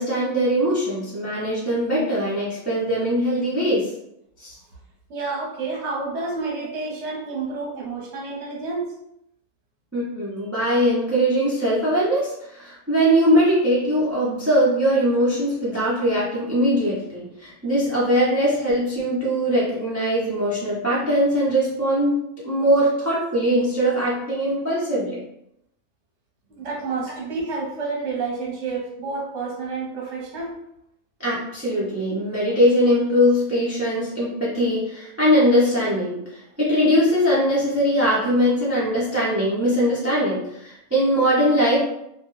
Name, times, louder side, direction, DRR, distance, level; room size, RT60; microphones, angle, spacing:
voice 1, 0.0-3.9 4.4-4.5 9.9-25.2 31.2-36.2 36.6-41.9, equal, 20° right, -8 dB, 0.4 m, -21 dB
voice 2, 5.1-8.9 26.5-30.5, right 4 dB, 55° right, -2 dB, 1.0 m, -29 dB
2.5 x 2.2 x 3.1 m, 0.79 s
omnidirectional pair, 1.5 m